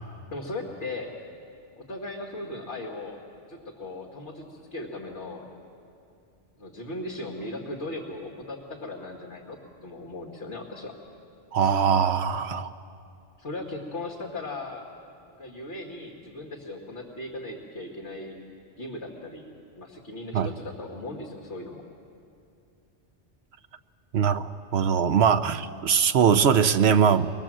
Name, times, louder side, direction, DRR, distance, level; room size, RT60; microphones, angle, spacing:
voice 1, 0.3-1.1 1.8-3.2 3.5-5.5 6.6-10.9 13.4-14.9 15.4-18.4 18.8-21.8, left 2 dB, 70° left, 0 dB, 2.3 m, -37 dB
voice 2, 11.5-12.7 20.3-20.5 24.1-27.3, right 7 dB, 65° right, 10 dB, 1.0 m, -21 dB
24.5 x 20.0 x 7.6 m, 2.5 s
omnidirectional pair, 1.2 m